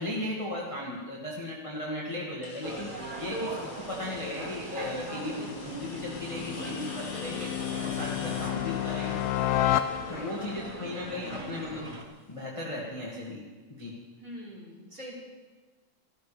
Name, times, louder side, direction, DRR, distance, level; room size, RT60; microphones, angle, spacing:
voice 1, 0.0-7.5 7.8-9.2 10.1-11.9 12.3-13.4 13.8-13.9, left 1 dB, 15° left, -5 dB, 1.7 m, -36 dB
sound 1, 2.4-12.1, left 4 dB, 45° left, 1.3 m, -48 dB
sound 2, 2.6-12.0, right 2 dB, 55° right, 0.5 m, -40 dB
sound 3, 4.1-10.5, left 13 dB, 80° left, 1.9 m, -32 dB
voice 2, 8.3-8.7 10.0-10.6 11.2-11.5 14.2-15.1, equal, 25° right, -5 dB, 4.5 m, -45 dB
14.5 x 14.5 x 5.1 m, 1.3 s
omnidirectional pair, 3.4 m